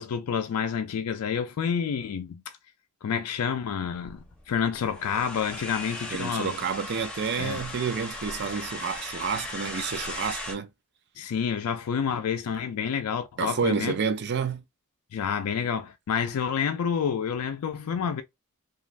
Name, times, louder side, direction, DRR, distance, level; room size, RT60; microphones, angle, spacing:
voice 1, 0.0-2.6 3.0-6.5 7.4-7.7 11.2-14.0 15.1-18.2, left 7 dB, 80° left, 0.4 m, -29 dB
sound 1, 3.8-10.5, left 2 dB, 5° left, 0.6 m, -38 dB
voice 2, 6.1-10.7 13.4-14.6, right 6 dB, 50° right, 0.4 m, -29 dB
2.4 x 2.3 x 3.2 m
head